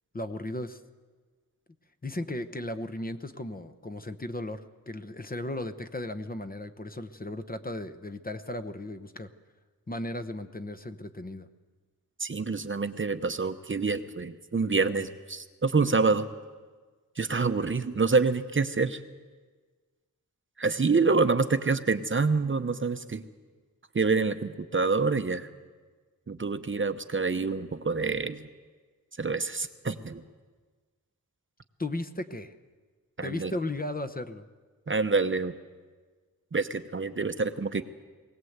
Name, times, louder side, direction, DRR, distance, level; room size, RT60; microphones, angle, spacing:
voice 1, 0.1-0.8 2.0-9.3 9.9-11.5 31.8-32.5 33.2-34.5, left 1 dB, 25° left, 9 dB, 0.9 m, -36 dB
voice 2, 12.2-16.3 17.2-19.0 20.6-23.2 23.9-25.5 26.3-28.5 29.2-30.2 33.2-33.5 34.9-35.5 36.5-37.8, right 4 dB, 35° right, 9 dB, 0.8 m, -27 dB
21.0 x 18.0 x 8.0 m, 1.4 s
wide cardioid pair, 120°, 35 cm